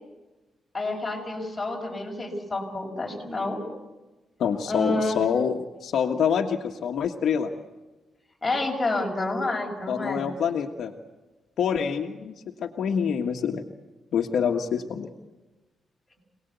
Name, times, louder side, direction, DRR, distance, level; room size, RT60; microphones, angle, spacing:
voice 1, 0.7-3.7 4.7-5.2 8.4-10.2, left 2 dB, 15° left, 0 dB, 5.8 m, -29 dB
voice 2, 4.4-7.5 9.9-10.9 11.6-12.3 12.6-13.6 14.1-15.1, left 7 dB, 65° left, 3 dB, 1.6 m, -26 dB
27.5 x 19.0 x 8.2 m, 1.1 s
cardioid pair, 145°, 0 cm